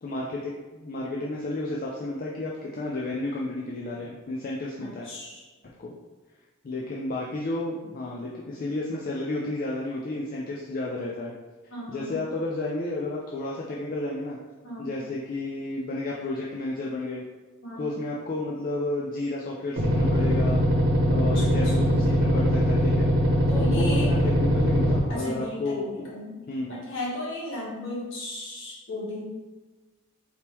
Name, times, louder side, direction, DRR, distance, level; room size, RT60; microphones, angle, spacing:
voice 1, 0.0-5.1 5.8-5.9 6.6-11.3 11.9-14.4 14.8-17.3 17.8-20.6 21.0-26.1 26.5-26.8, left 2 dB, 40° left, -3 dB, 0.4 m, -32 dB
voice 2, 4.8-5.4 11.7-12.2 14.6-14.9 17.6-17.9 21.2-22.0 23.5-24.1 25.1-29.2, left 1 dB, 60° left, -5 dB, 1.3 m, -36 dB
sound 1, 19.8-25.0, equal, 55° right, 0.9 m, -22 dB
4.2 x 3.6 x 2.9 m, 1.2 s
head